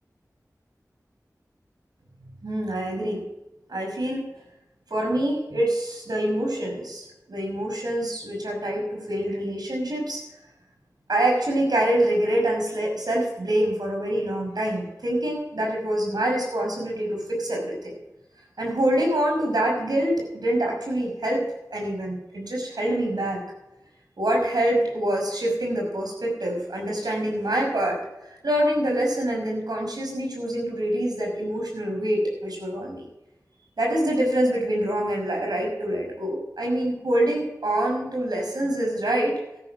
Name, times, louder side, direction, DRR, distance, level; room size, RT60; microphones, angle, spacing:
voice 1, 2.4-3.2 3.7-4.3 4.9-10.2 11.1-17.9 18.6-23.4 24.2-28.0 28.4-33.0 33.8-39.4, right 1 dB, 85° right, 0 dB, 5.8 m, -25 dB
13.5 x 12.0 x 5.1 m, 0.93 s
wide cardioid pair, 45°, 7 cm